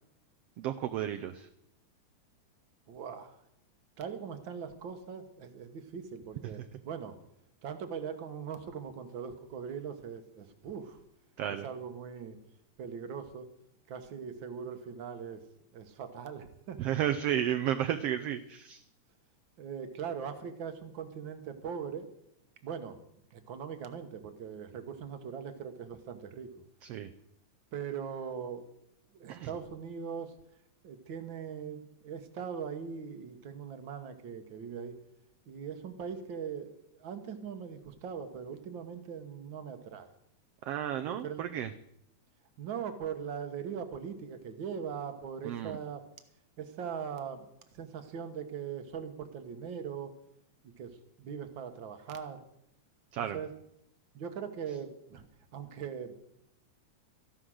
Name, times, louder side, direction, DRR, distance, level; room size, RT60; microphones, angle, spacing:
voice 1, 0.6-1.5 11.4-11.7 16.8-18.8 26.8-27.1 29.3-29.5 40.6-41.7 45.4-45.8 53.1-53.4, right 10 dB, 85° right, 9 dB, 1.3 m, -32 dB
voice 2, 2.9-3.4 4.0-7.2 7.6-11.0 11.6-12.4 12.8-13.5 13.9-15.4 15.7-16.8 19.6-22.1 22.6-23.0 23.3-26.5 27.7-28.7 29.1-30.3 30.8-34.9 35.5-40.1 41.0-41.4 42.6-46.0 46.6-47.5 47.7-50.1 50.6-50.9 51.2-52.4 53.2-53.5 54.1-55.3 55.5-56.1, right 7 dB, 55° right, 8 dB, 1.4 m, -40 dB
14.0 x 11.5 x 6.3 m, 0.77 s
omnidirectional pair, 3.5 m